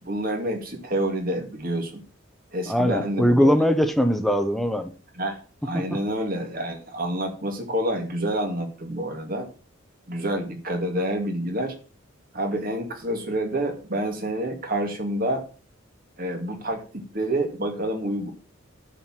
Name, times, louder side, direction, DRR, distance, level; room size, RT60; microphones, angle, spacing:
voice 1, 0.0-2.0 2.5-3.6 5.1-5.4 5.6-9.5 10.1-11.7 12.3-15.4 16.2-18.3, right 1 dB, 45° right, 3 dB, 2.4 m, -28 dB
voice 2, 2.7-4.9 5.7-6.0, equal, ahead, 7 dB, 1.0 m, -21 dB
10.5 x 4.8 x 7.5 m, 0.38 s
head